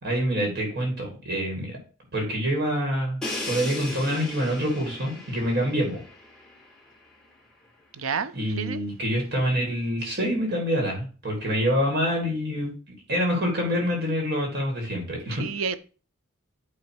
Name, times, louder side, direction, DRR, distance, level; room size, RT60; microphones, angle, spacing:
voice 1, 0.0-1.8 2.1-3.2 3.5-6.0 8.3-12.7 13.1-15.4, equal, 50° right, 2.2 m, -26 dB
Crash cymbal, 3.2-7.0, left 2 dB, 5° left, 1.7 m, -37 dB
voice 2, 7.9-8.8 15.4-15.8, right 6 dB, 70° right, 0.6 m, -30 dB
9.1 x 3.2 x 4.6 m
head